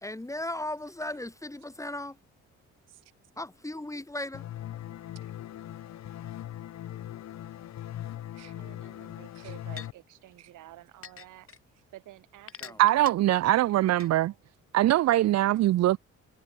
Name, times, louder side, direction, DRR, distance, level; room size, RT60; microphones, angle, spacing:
voice 1, 0.0-2.2 3.4-4.5 12.6-12.8, left 1 dB, 10° left, 2.0 m, -36 dB
sound 1, 4.3-9.9, left 12 dB, 60° left, 1.0 m, -40 dB
voice 2, 8.5-11.5 11.9-13.1 13.7-14.4 14.9-15.6, right 15 dB, 90° right, 5.5 m, -51 dB
sound 2, 8.8-8.9 9.8-9.9 11.0-11.6 12.5-13.1 14.0-14.1, left 7 dB, 45° left, 6.3 m, -43 dB
voice 3, 12.8-14.3 14.7-16.0, right 14 dB, 60° right, 0.5 m, -22 dB
cardioid pair, 90°, 30 cm